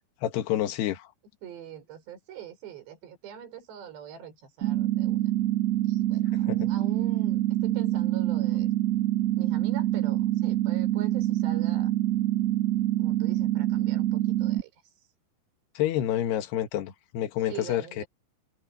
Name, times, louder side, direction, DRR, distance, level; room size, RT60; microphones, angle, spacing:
voice 1, 0.2-1.1 6.5-6.7 15.7-18.0, left 11 dB, 70° left, 3.5 m, -28 dB
voice 2, 1.4-5.3 5.8-8.7 9.4-11.9 13.0-14.9 17.4-18.1, right 8 dB, 65° right, 7.1 m, -44 dB
sound 1, 4.6-14.6, right 15 dB, 50° right, 2.1 m, -26 dB
omnidirectional pair, 5.3 m